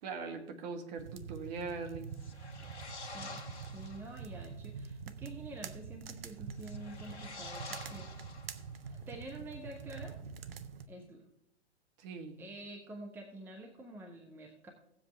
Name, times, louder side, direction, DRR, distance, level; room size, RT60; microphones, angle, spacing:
voice 1, 0.0-2.1 12.0-12.4, right 4 dB, 35° right, 6 dB, 1.4 m, -41 dB
sound 1, 1.0-10.9, right 6 dB, 55° right, 0.7 m, -46 dB
sound 2, 2.1-4.2 6.5-8.9, left 3 dB, 70° left, 1.5 m, -48 dB
voice 2, 3.0-3.4 3.7-8.1 8.9-10.2 10.9-11.2 12.4-14.7, right 1 dB, 5° right, 2 dB, 0.8 m, -48 dB
16.5 x 7.6 x 3.3 m, 0.78 s
figure-of-eight pair, 115°, 35 cm